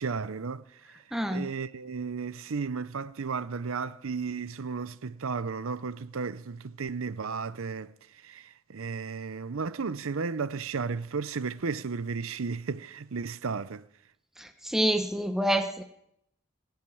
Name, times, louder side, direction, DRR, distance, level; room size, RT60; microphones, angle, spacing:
voice 1, 0.0-1.0 1.3-13.9, right 5 dB, 80° right, 0.6 m, -34 dB
voice 2, 1.1-1.4 14.4-15.8, equal, ahead, 1.0 m, -27 dB
19.5 x 7.9 x 8.6 m
head